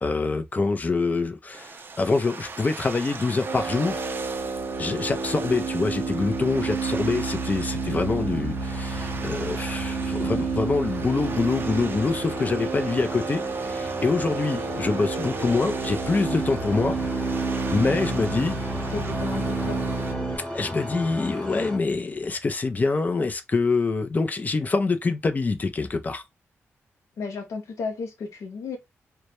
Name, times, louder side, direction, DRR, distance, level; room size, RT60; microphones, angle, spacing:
voice 1, 0.0-4.0 4.8-17.0 17.7-18.6 20.5-26.2, left 3 dB, 30° left, 0.4 m, -25 dB
sound 1, 1.5-20.1, right 4 dB, 45° right, 0.4 m, -40 dB
sound 2, 3.4-20.4, right 4 dB, 85° right, 0.7 m, -30 dB
sound 3, 7.7-21.8, left 1 dB, 10° left, 0.8 m, -37 dB
voice 2, 18.9-19.8 27.2-28.8, left 4 dB, 80° left, 0.6 m, -33 dB
2.2 x 2.0 x 2.8 m
cardioid pair, 95°, 5 cm